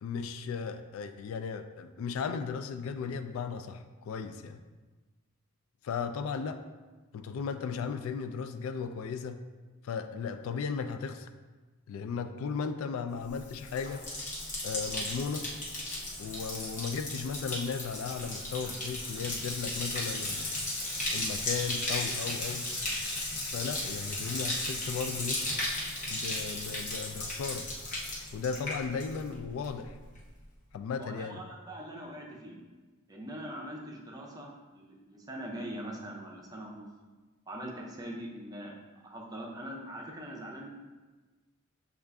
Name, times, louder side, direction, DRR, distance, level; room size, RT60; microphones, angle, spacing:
voice 1, 0.0-4.6 5.8-6.6 7.1-9.4 9.8-11.3 11.9-14.0 14.6-15.5 16.2-20.6 21.1-22.7 23.5-25.4 26.1-27.7 28.3-30.0 30.7-31.4, left 5 dB, 75° left, 9 dB, 0.3 m, -36 dB
Bathtub (filling or washing), 13.3-29.4 29.6-30.2, left 1 dB, 35° left, 0.9 m, -35 dB
voice 2, 31.0-32.6 33.1-36.9 37.5-38.7 39.0-40.7, right 1 dB, 20° right, -1 dB, 0.6 m, -42 dB
6.4 x 2.4 x 3.4 m, 1.3 s
head